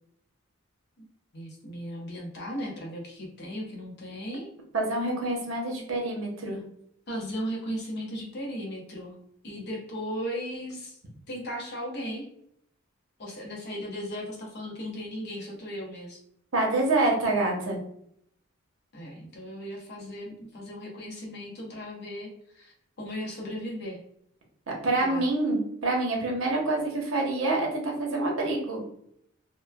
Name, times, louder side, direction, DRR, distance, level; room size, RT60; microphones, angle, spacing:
voice 1, 1.3-4.5 7.1-9.2 9.4-11.0 11.3-12.3 13.2-16.2 18.9-24.0 25.0-25.2, equal, 55° left, -1 dB, 0.7 m, -36 dB
voice 2, 4.7-6.6 16.5-17.8 24.7-28.8, right 2 dB, 75° right, 0 dB, 0.8 m, -27 dB
3.0 x 2.1 x 2.2 m, 0.71 s
head